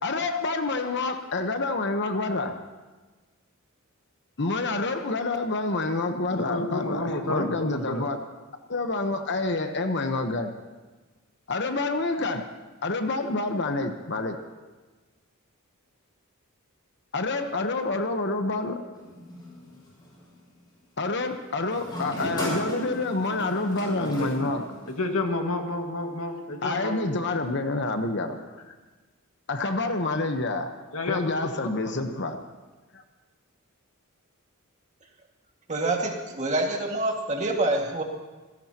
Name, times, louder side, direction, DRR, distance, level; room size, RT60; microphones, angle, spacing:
voice 1, 0.0-2.6 4.4-8.2 8.7-10.5 11.5-12.5 12.8-14.4 17.1-18.8 21.0-24.6 26.6-28.6 29.5-30.8 31.1-32.4 32.9-33.0, left 2 dB, 55° left, 6 dB, 1.1 m, -28 dB
voice 2, 6.3-8.0 24.0-24.5 24.9-27.0 30.9-32.4, left 2 dB, 75° left, 3 dB, 2.0 m, -31 dB
sound 1, 18.9-20.2 21.6-25.2, equal, 20° left, 6.4 m, -36 dB
voice 3, 35.7-38.0, right 2 dB, 35° right, 1 dB, 2.1 m, -26 dB
27.0 x 17.0 x 3.0 m, 1.3 s
head